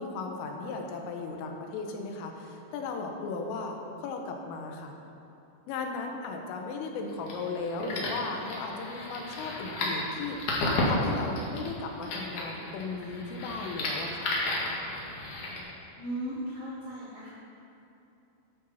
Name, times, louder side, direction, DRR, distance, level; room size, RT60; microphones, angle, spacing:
voice 1, 0.0-4.9 5.7-10.5 10.9-14.4, left 4 dB, 85° left, 3 dB, 3.7 m, -36 dB
sound 1, 7.1-15.6, left 2 dB, 55° left, 2.5 m, -33 dB
voice 2, 15.9-17.3, right 1 dB, 75° right, -6 dB, 1.4 m, -36 dB
13.0 x 11.5 x 4.3 m, 2.9 s
omnidirectional pair, 5.7 m